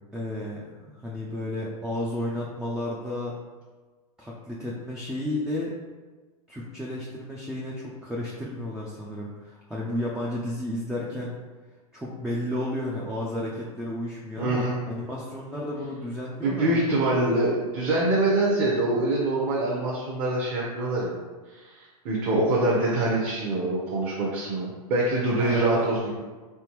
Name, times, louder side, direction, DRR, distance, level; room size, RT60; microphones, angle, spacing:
voice 1, 0.1-3.4 4.2-5.8 6.5-11.4 11.9-16.9 25.4-25.9, left 1 dB, 5° right, -5 dB, 0.4 m, -32 dB
voice 2, 14.4-14.8 16.4-21.1 21.5-26.1, right 2 dB, 40° right, -5 dB, 0.9 m, -25 dB
3.7 x 3.5 x 3.0 m, 1.3 s
hypercardioid pair, 130°, 19 cm